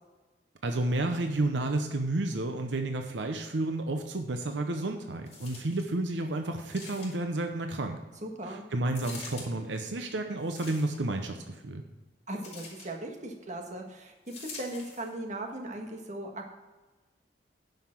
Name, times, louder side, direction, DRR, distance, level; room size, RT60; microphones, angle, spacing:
voice 1, 0.6-8.0 8.5-11.8, right 2 dB, 85° right, 5 dB, 0.8 m, -31 dB
sound 1, 5.3-5.9 6.7-7.4 8.9-9.5 10.4-11.1 12.4-12.9 14.3-15.1 15.8-15.9, left 3 dB, 40° left, 3.8 m, -45 dB
voice 2, 8.2-8.6 12.3-16.5, right 1 dB, 45° right, 3 dB, 1.5 m, -38 dB
10.5 x 5.8 x 5.8 m, 1.2 s
head